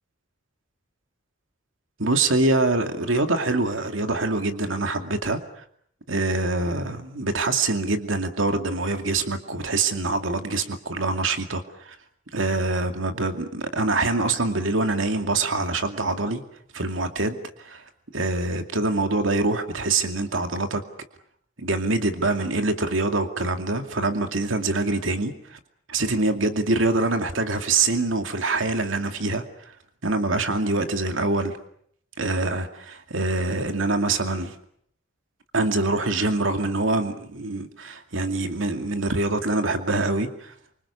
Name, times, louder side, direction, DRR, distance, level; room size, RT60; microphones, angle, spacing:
voice 1, 2.0-5.6 6.1-12.0 12.3-16.4 16.7-17.8 18.1-20.8 21.6-25.6 25.9-29.4 30.0-31.5 32.2-34.5 35.5-40.5, right 2 dB, 75° right, 6 dB, 2.4 m, -25 dB
28.0 x 25.5 x 7.0 m, 0.67 s
head